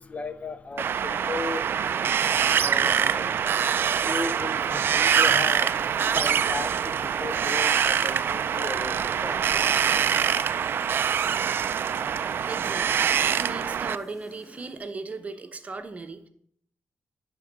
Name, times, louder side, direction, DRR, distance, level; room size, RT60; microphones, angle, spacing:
voice 1, 0.0-2.1 2.6-3.3 4.0-9.4, left 4 dB, 30° left, 0.6 m, -36 dB
Wind, 0.8-14.0, right 8 dB, 60° right, 0.3 m, -24 dB
sound 1, 4.8-14.8, equal, 5° left, 1.3 m, -51 dB
voice 2, 12.0-16.3, right 3 dB, 35° right, 0.8 m, -38 dB
10.5 x 3.7 x 5.3 m
cardioid pair, 110°, 4 cm